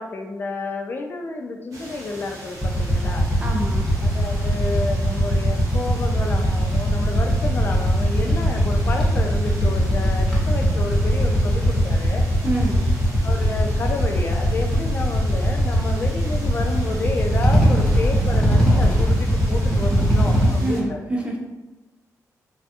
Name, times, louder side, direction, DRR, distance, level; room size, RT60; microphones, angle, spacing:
voice 1, 0.0-3.3 4.0-12.2 13.2-21.0, left 3 dB, 35° left, 3 dB, 0.3 m, -30 dB
sound 1, 1.7-20.8, right 1 dB, 60° right, 0.8 m, -40 dB
Motorcycle / Idling, 2.6-20.5, equal, 15° left, 0.7 m, -20 dB
voice 2, 3.4-3.9 12.4-12.8 20.6-21.4, right 2 dB, 20° right, -1 dB, 0.5 m, -26 dB
3.3 x 2.3 x 2.7 m, 1.1 s
wide cardioid pair, 150°, 6 cm